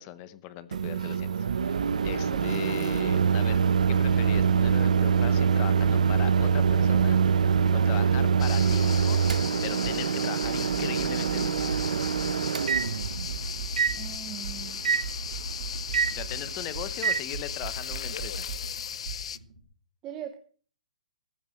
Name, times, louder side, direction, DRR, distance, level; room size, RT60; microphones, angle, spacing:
voice 1, 0.0-3.6 3.9-7.2 7.7-9.2 9.6-11.6 16.1-18.5, left 13 dB, 20° left, 15 dB, 0.8 m, -39 dB
Microwave oven, 0.7-17.2, right 6 dB, 90° right, 0.9 m, -25 dB
sound 1, 1.5-19.6, right 4 dB, 75° right, 4.7 m, -39 dB
sound 2, 8.4-19.4, left 8 dB, 55° left, 0.6 m, -37 dB
voice 2, 13.9-14.9 20.0-20.4, right 11 dB, 15° right, 6 dB, 0.8 m, -41 dB
15.0 x 9.3 x 6.4 m, 0.43 s
hypercardioid pair, 175°, 4 cm